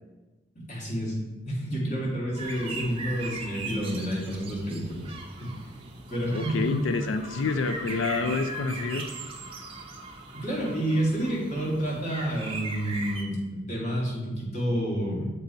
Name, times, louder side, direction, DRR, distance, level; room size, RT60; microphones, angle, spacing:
voice 1, 0.7-1.2 1.5-5.1 5.4-5.5 6.1-6.7 10.3-15.3, right 1 dB, 40° left, -4 dB, 2.0 m, -29 dB
sound 1, 2.4-13.2, right 3 dB, 30° right, 0.8 m, -39 dB
voice 2, 6.3-9.1, left 4 dB, 85° left, 7 dB, 0.4 m, -28 dB
6.7 x 4.6 x 3.9 m, 1.2 s
head